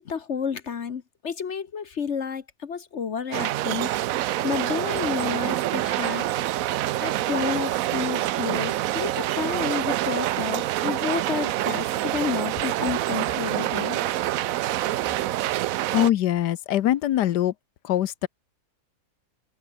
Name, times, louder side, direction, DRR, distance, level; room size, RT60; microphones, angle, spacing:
voice 1, 0.0-3.9 4.4-6.3 7.0-14.0, left 6 dB, 50° left, 1.2 m, -30 dB
sound 1, 3.3-16.1, right 14 dB, 70° right, 0.9 m, -26 dB
voice 2, 15.9-17.5 17.8-18.3, left 12 dB, 85° left, 1.4 m, -22 dB
open air
omnidirectional pair, 1.7 m